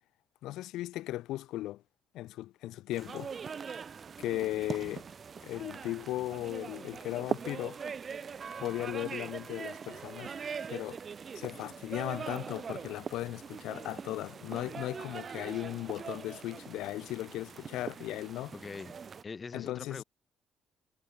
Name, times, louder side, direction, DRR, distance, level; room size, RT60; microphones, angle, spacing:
voice 1, 0.4-1.8 2.1-3.3 4.2-5.0 5.4-7.8 8.6-10.3 10.7-11.0 11.3-18.5 19.5-20.0, left 15 dB, 90° left, 2.4 m, -37 dB
sound 1, 2.9-19.2, right 6 dB, 45° right, 0.7 m, -42 dB
voice 2, 18.5-19.0 19.2-20.0, left 4 dB, 35° left, 1.8 m, -43 dB
cardioid pair, 90°, 0 cm